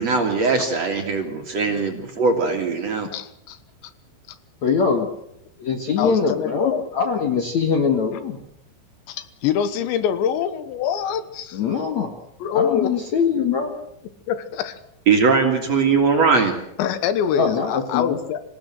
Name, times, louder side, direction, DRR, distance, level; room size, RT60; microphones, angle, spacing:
voice 1, 0.0-3.1 15.1-16.6, right 4 dB, 45° right, 3 dB, 2.7 m, -20 dB
voice 2, 2.9-3.6 6.0-6.9 9.1-11.6 12.4-12.9 14.3-14.8 16.8-18.4, left 8 dB, 80° left, 12 dB, 3.4 m, -25 dB
voice 3, 4.6-5.1 5.6-8.4 11.5-12.1 12.5-13.7 17.3-18.2, left 6 dB, 55° left, 4 dB, 2.1 m, -22 dB
26.0 x 16.5 x 7.7 m, 0.78 s
omnidirectional pair, 5.2 m